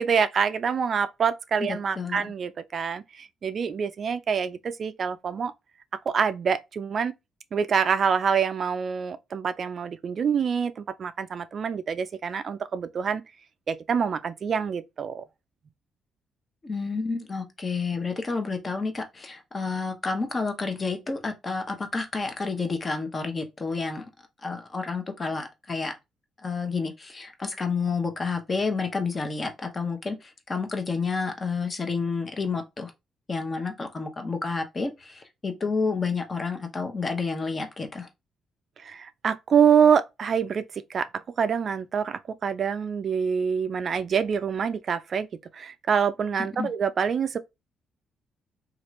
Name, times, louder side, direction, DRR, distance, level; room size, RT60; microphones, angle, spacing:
voice 1, 0.0-5.5 6.1-7.1 7.5-13.2 13.7-15.2 38.8-40.6 40.9-45.3 45.5-47.4, right 7 dB, 50° right, 0.3 m, -26 dB
voice 2, 1.6-2.3 16.6-24.1 24.4-25.9 26.4-32.9 33.3-38.1 46.6-46.7, left 4 dB, 30° left, 0.8 m, -30 dB
2.9 x 2.4 x 3.1 m
cardioid pair, 90°, 0 cm